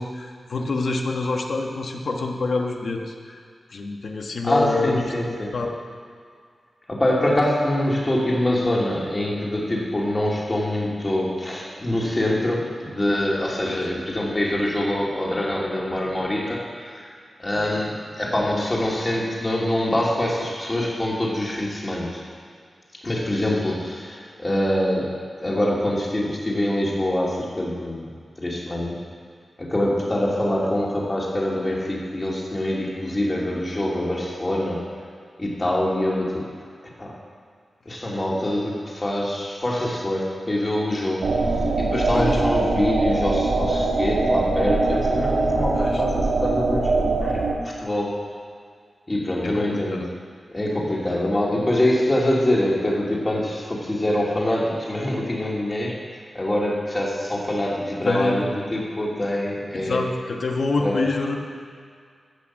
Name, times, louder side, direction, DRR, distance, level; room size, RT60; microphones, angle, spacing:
voice 1, 0.0-3.4 3.7-5.8 13.6-13.9 42.1-42.4 45.8-46.0 49.4-50.1 58.0-58.4 59.7-61.4, left 3 dB, 65° left, 2 dB, 1.3 m, -27 dB
voice 2, 4.4-5.5 6.9-17.1 17.4-22.2 23.0-25.1 25.4-28.1 28.4-29.0 29.6-34.8 35.4-36.4 37.0-37.2 37.9-41.3 41.8-47.4 47.8-48.2 49.1-50.0 50.5-60.0 60.8-61.0, left 1 dB, 25° left, -3 dB, 2.6 m, -24 dB
sound 1, 41.2-47.5, right 3 dB, 80° right, 1.4 m, -22 dB
15.0 x 6.2 x 7.2 m, 2.1 s
wide cardioid pair, 110°, 0 cm